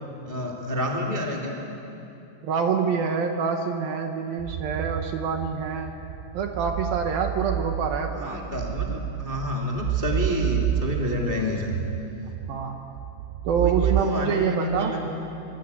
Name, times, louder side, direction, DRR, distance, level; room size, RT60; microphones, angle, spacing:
voice 1, 0.3-1.5 8.1-11.8 13.6-15.1, left 1 dB, 20° left, -1 dB, 1.5 m, -29 dB
voice 2, 2.4-5.9 6.3-8.4 12.5-12.8 13.4-15.0, right 6 dB, 65° right, 4 dB, 2.7 m, -26 dB
sound 1, 4.4-14.0, right 12 dB, 85° right, 2.9 m, -30 dB
25.5 x 24.0 x 8.3 m, 2.8 s
omnidirectional pair, 5.1 m